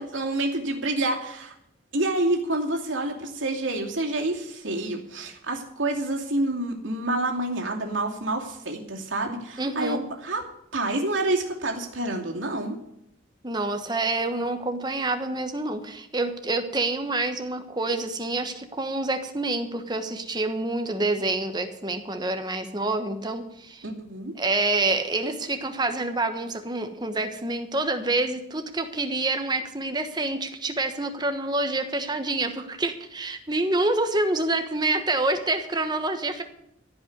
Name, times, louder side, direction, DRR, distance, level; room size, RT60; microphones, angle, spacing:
voice 1, 0.0-1.5 1.9-10.4 10.7-12.8 23.8-24.3, right 2 dB, 85° right, 0 dB, 2.6 m, -28 dB
voice 2, 9.6-10.1 13.4-23.8 24.4-36.4, right 2 dB, 20° right, 7 dB, 1.2 m, -27 dB
15.0 x 5.7 x 9.6 m, 0.77 s
head